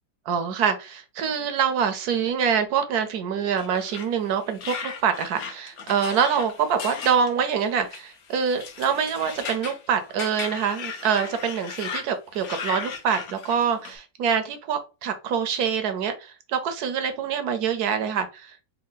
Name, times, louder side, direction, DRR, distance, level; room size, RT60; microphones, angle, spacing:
voice 1, 0.3-18.7, right 7 dB, 70° right, 9 dB, 1.0 m, -25 dB
sound 1, 3.6-12.1 12.3-13.9, left 6 dB, 55° left, 0.8 m, -36 dB
4.5 x 2.3 x 3.8 m, 0.30 s
omnidirectional pair, 2.0 m